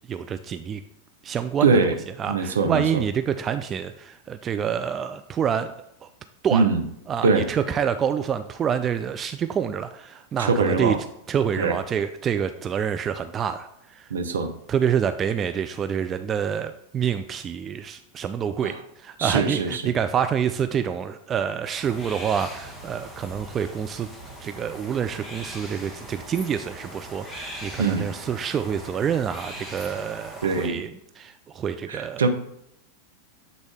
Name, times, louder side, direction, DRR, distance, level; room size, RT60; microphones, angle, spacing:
voice 1, 0.1-0.8 1.2-1.8 2.2-5.7 6.0-6.1 6.4-6.7 7.1-11.0 11.3-14.1 14.7-24.1 24.4-32.3, right 8 dB, 25° right, 9 dB, 0.3 m, -27 dB
voice 2, 1.6-2.0 2.3-3.0 6.5-6.8 7.2-7.5 10.4-11.0 11.6-11.8 14.1-14.5 18.6-18.7 19.2-19.9 27.8-28.1 30.4-30.8 31.9-32.3, right 4 dB, 65° right, 6 dB, 0.7 m, -22 dB
sound 1, 21.7-30.7, right 1 dB, 5° left, 1.3 m, -40 dB
7.9 x 3.9 x 3.4 m, 0.77 s
figure-of-eight pair, 90°, 0 cm